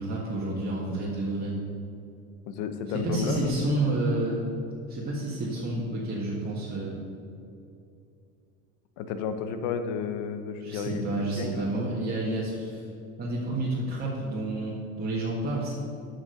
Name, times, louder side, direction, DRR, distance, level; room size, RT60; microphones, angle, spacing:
voice 1, 0.0-1.6 2.9-4.5 4.9-7.0 10.6-12.9 13.2-15.7, right 2 dB, 20° right, -6 dB, 1.6 m, -30 dB
voice 2, 2.5-3.5 9.0-11.7, left 6 dB, 70° left, 9 dB, 1.0 m, -32 dB
7.3 x 6.2 x 6.4 m, 2.7 s
supercardioid pair, 105°, 43 cm